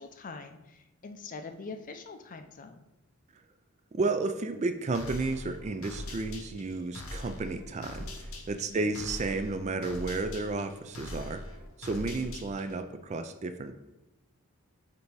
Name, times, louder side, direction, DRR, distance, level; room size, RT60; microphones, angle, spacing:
voice 1, 0.0-2.9 8.7-8.9, left 4 dB, 40° left, 8 dB, 0.5 m, -44 dB
voice 2, 3.9-11.4 11.8-13.7, right 3 dB, 35° right, 9 dB, 0.3 m, -32 dB
sound 1, 4.9-12.8, left 1 dB, 90° left, 1.0 m, -42 dB
8.1 x 2.7 x 4.6 m, 0.98 s
head